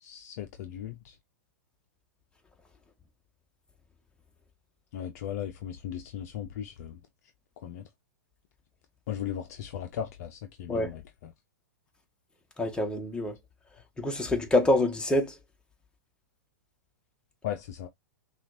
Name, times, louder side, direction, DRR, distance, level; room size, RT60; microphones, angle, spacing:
voice 1, 0.0-1.2 4.9-7.0 7.6-7.8 9.1-11.0 17.4-17.9, left 10 dB, 55° left, 0.6 m, -37 dB
voice 2, 12.6-13.4 14.0-15.4, left 1 dB, 10° left, 1.2 m, -26 dB
5.8 x 2.5 x 2.6 m
hypercardioid pair, 110°, 10 cm